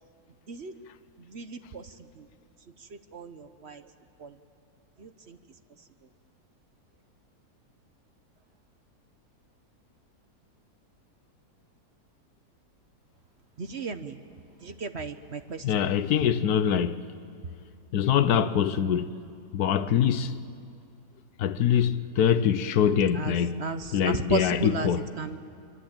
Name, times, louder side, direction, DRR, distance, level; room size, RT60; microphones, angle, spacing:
voice 1, 1.2-2.3 2.8-3.9 4.2-4.4 5.0-5.4 13.6-14.2 14.6-15.9 23.1-24.9 25.2-25.4, right 4 dB, 45° right, 1.1 m, -35 dB
voice 2, 15.6-17.0 17.9-19.1 19.5-20.3 21.4-23.6 23.9-25.0, left 8 dB, 75° left, 1.3 m, -24 dB
26.0 x 24.0 x 8.9 m
omnidirectional pair, 1.7 m